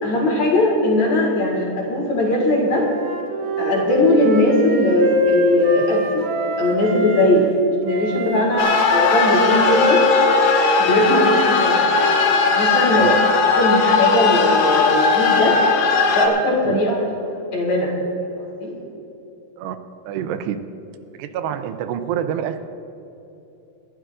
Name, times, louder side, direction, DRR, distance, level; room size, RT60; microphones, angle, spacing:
voice 1, 0.0-2.9 3.6-6.3 6.6-7.5 7.8-10.0 10.8-11.8 12.4-13.2 13.6-15.6 16.1-17.9 18.4-18.7, left 1 dB, 50° left, -2 dB, 2.7 m, -19 dB
Wind instrument woodwind instrument, 2.6-7.3 7.9-12.7, equal, 65° right, 1.8 m, -25 dB
sound 1, 8.6-16.3, left 4 dB, 75° left, 3.2 m, -18 dB
voice 2, 20.1-20.6 21.1-22.7, right 9 dB, 85° right, 9 dB, 2.8 m, -27 dB
29.0 x 11.5 x 2.5 m, 2.9 s
omnidirectional pair, 4.8 m